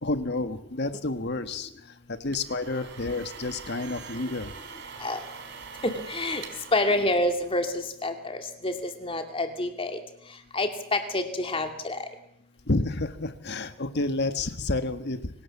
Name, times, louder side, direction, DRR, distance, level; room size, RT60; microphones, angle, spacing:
voice 1, 0.0-1.7 2.1-4.5 12.7-15.3, left 2 dB, 50° left, 10 dB, 1.6 m, -29 dB
sound 1, 2.1-7.8, right 5 dB, 55° right, 3.9 m, -44 dB
voice 2, 5.8-6.4 6.7-10.0 10.5-12.0, left 1 dB, 25° left, 6 dB, 2.5 m, -28 dB
25.5 x 17.5 x 7.2 m, 0.71 s
head